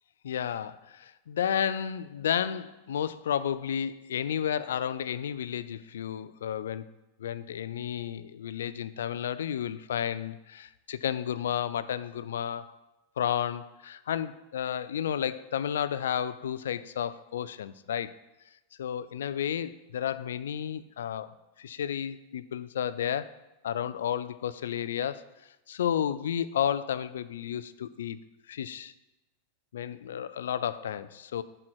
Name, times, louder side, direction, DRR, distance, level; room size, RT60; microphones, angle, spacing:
voice 1, 0.2-6.9 7.2-12.8 13.2-18.1 18.8-21.3 21.6-23.3 23.6-25.2 25.7-28.2 28.5-28.9 29.7-31.4, left 9 dB, 80° left, 15 dB, 0.3 m, -32 dB
6.2 x 4.4 x 6.2 m, 1.0 s
hypercardioid pair, 110°, 0 cm